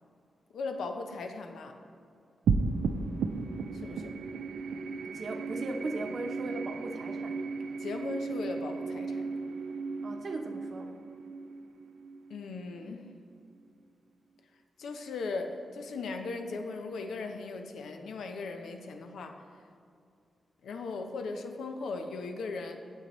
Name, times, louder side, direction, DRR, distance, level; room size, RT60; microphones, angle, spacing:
voice 1, 0.5-1.7 3.7-4.1 7.8-9.3 12.3-13.1 14.8-19.4 20.6-22.8, left 3 dB, 90° left, 5 dB, 0.6 m, -38 dB
sound 1, 2.5-13.1, right 4 dB, 90° right, 0.3 m, -35 dB
voice 2, 5.0-7.4 10.0-11.0, right 2 dB, 50° right, 4 dB, 0.8 m, -38 dB
8.0 x 7.3 x 3.0 m, 2.4 s
cardioid pair, 95°, 0 cm